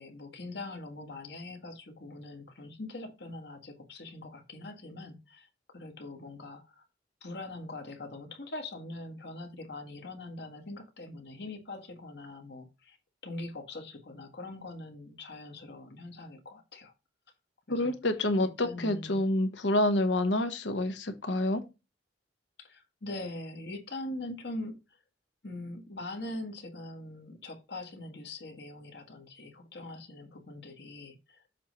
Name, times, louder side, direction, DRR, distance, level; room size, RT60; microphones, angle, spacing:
voice 1, 0.0-6.8 7.2-13.0 13.2-16.9 17.7-17.9 18.4-19.2 22.6-25.0 25.4-31.5, left 2 dB, 65° left, 1.6 m, -42 dB
voice 2, 17.7-21.6, left 1 dB, 80° left, 1.1 m, -28 dB
7.4 x 3.1 x 5.4 m
head